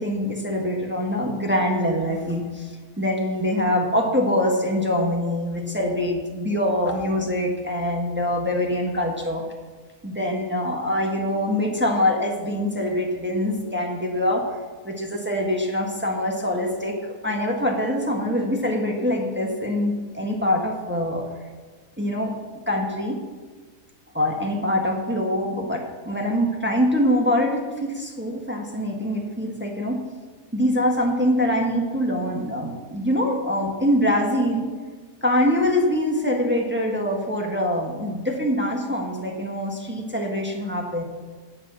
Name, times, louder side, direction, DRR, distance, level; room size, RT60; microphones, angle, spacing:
voice 1, 0.0-9.4 10.0-14.6 14.8-21.3 22.0-22.3 22.7-23.2 24.1-30.0 30.5-34.7 35.2-41.0, left 1 dB, 10° right, 0 dB, 1.4 m, -24 dB
17.5 x 5.8 x 6.1 m, 1.4 s
omnidirectional pair, 1.5 m